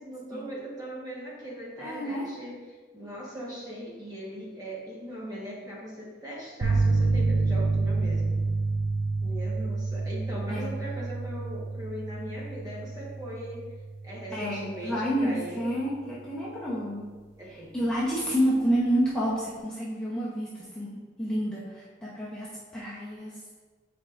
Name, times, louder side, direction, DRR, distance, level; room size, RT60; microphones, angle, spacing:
voice 1, 0.0-2.6 2.9-8.5 9.2-13.7 14.0-15.8 17.4-17.8, equal, 20° right, -6 dB, 1.4 m, -39 dB
voice 2, 1.8-2.3 10.5-10.7 14.3-17.1 17.5-23.4, equal, 5° left, -9 dB, 0.9 m, -29 dB
sound 1, 6.6-14.3, right 3 dB, 80° right, 0.7 m, -28 dB
8.0 x 4.7 x 2.6 m, 1.4 s
head